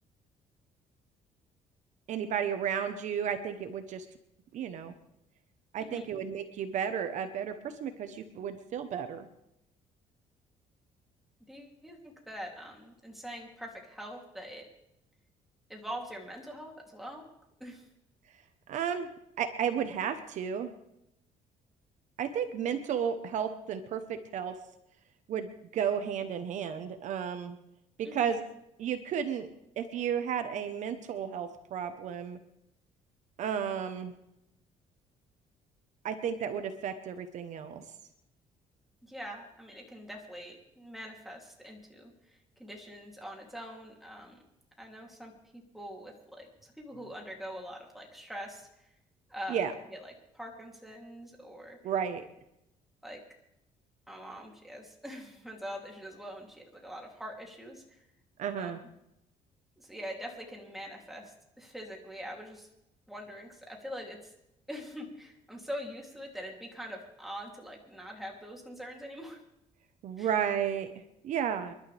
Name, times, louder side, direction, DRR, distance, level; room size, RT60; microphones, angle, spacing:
voice 1, 2.1-4.1 4.5-4.9 5.7-9.3 18.7-19.1 19.4-20.7 22.2-24.6 25.3-27.6 28.0-28.4 28.8-29.5 29.8-32.4 33.4-34.1 36.0-37.8 49.5-49.7 51.8-52.2 58.4-58.8 70.0-70.9 71.2-71.7, right 8 dB, 65° right, 8 dB, 1.1 m, -33 dB
voice 2, 11.5-14.6 15.7-17.3 17.6-17.9 28.0-28.3 39.0-44.4 44.8-48.9 49.3-51.8 53.0-53.2 54.1-58.1 58.6-58.7 59.8-62.7 63.1-64.3 64.7-69.4 70.2-70.3, equal, ahead, -1 dB, 3.1 m, -44 dB
28.5 x 12.0 x 3.5 m, 0.83 s
cardioid pair, 130°, 14 cm